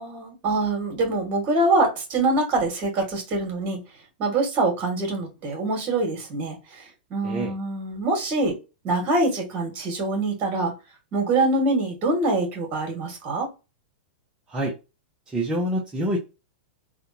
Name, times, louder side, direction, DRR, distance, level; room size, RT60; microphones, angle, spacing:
voice 1, 0.0-3.8 4.2-6.9 7.1-8.6 8.8-10.7 11.1-13.5, right 2 dB, 35° right, 1.9 m, -24 dB
voice 2, 15.3-16.2, right 1 dB, 15° right, 0.9 m, -26 dB
3.4 x 2.4 x 2.8 m
hypercardioid pair, 130°, 5 cm